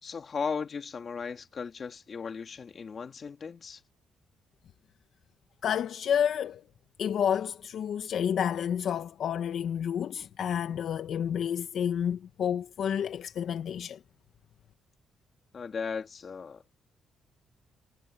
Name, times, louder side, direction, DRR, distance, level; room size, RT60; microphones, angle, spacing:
voice 1, 0.0-3.8 15.5-16.6, left 5 dB, 45° left, 2.6 m, -36 dB
voice 2, 5.6-6.6 7.0-14.0, left 8 dB, 65° left, 1.2 m, -30 dB
cardioid pair, 90°, 0 cm